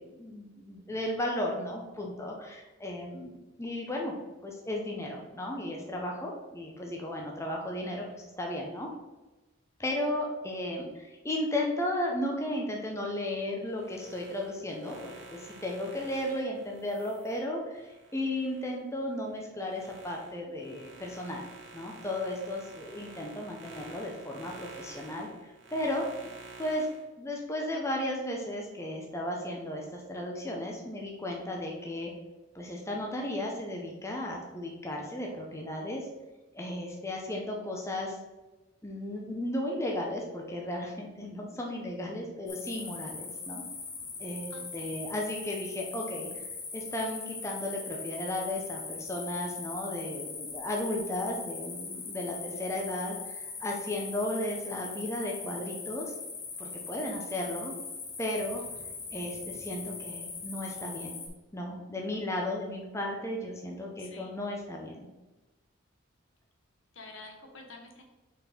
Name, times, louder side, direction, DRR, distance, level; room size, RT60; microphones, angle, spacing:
voice 1, 0.0-4.1 4.4-8.9 9.8-21.4 21.7-26.0 26.6-26.9 27.2-32.1 32.5-36.1 36.5-38.2 38.8-43.6 44.2-56.1 56.6-57.7 58.2-58.6 59.1-61.2 61.5-65.1, left 1 dB, 15° left, -1 dB, 0.7 m, -35 dB
sound 1, 13.6-18.7 19.2-27.0, right 3 dB, 65° right, 1.5 m, -50 dB
sound 2, 42.5-61.3, left 4 dB, 50° left, 1.5 m, -41 dB
voice 2, 44.5-45.0 64.0-64.3 66.9-68.0, left 3 dB, 65° left, 2 dB, 1.2 m, -49 dB
5.2 x 4.4 x 5.0 m, 1.1 s
head